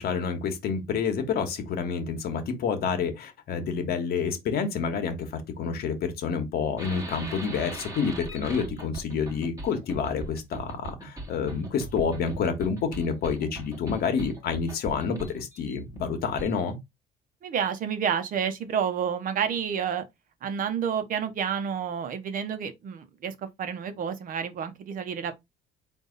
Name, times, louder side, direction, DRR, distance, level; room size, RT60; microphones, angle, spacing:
voice 1, 0.0-16.8, left 6 dB, 65° left, 1.2 m, -28 dB
sound 1, 6.8-16.7, right 2 dB, 20° right, 1.2 m, -40 dB
voice 2, 17.4-20.0 20.4-25.3, right 7 dB, 55° right, 0.9 m, -29 dB
4.0 x 2.7 x 3.8 m
cardioid pair, 110°, 17 cm